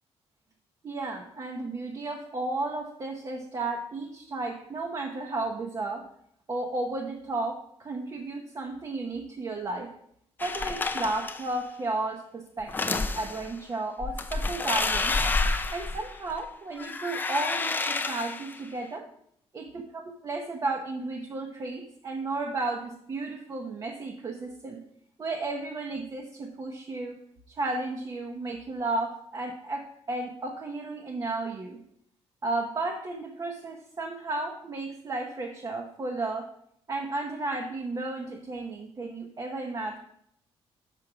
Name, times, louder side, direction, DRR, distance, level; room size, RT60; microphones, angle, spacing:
voice 1, 0.8-6.1 6.5-9.9 10.4-15.2 15.7-19.1 19.5-24.8 25.2-27.2 27.5-31.8 32.4-36.5 36.9-40.0, right 2 dB, 30° right, 2 dB, 0.8 m, -33 dB
sound 1, 10.4-11.6 12.6-13.5 14.0-16.4 16.8-18.6, left 3 dB, 15° left, 0.4 m, -29 dB
6.0 x 5.9 x 4.9 m, 0.70 s
cardioid pair, 135°, 11 cm